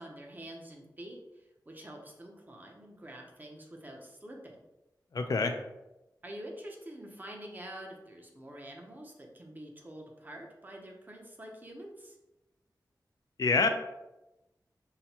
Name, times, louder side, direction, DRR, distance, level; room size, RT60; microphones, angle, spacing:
voice 1, 0.0-4.6 6.2-12.2, right 1 dB, 25° right, 0 dB, 0.7 m, -47 dB
voice 2, 5.1-5.5 13.4-13.7, left 4 dB, 55° left, 6 dB, 0.4 m, -26 dB
5.6 x 2.2 x 2.8 m, 0.96 s
wide cardioid pair, 110°, 7 cm